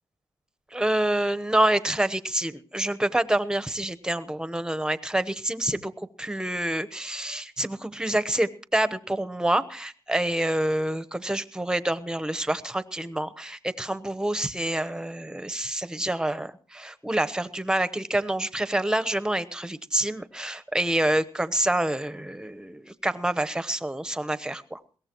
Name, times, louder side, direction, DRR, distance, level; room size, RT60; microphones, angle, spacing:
voice 1, 0.7-5.9 6.2-24.8, right 1 dB, 10° right, 12 dB, 1.0 m, -27 dB
21.5 x 17.5 x 3.0 m, 0.40 s
cardioid pair, 85°, 9 cm